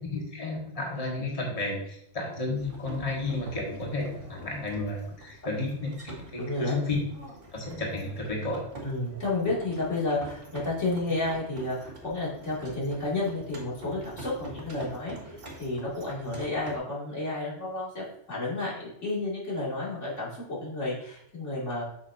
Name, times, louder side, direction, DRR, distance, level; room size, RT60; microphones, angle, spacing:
voice 1, 0.1-7.0 7.5-8.6, left 2 dB, 30° left, -2 dB, 1.6 m, -32 dB
sound 1, 2.5-16.8, right 1 dB, 50° right, 1.8 m, -45 dB
voice 2, 6.4-6.8 8.8-21.8, left 2 dB, 90° left, -6 dB, 2.9 m, -31 dB
8.0 x 6.2 x 2.7 m, 0.73 s
omnidirectional pair, 1.2 m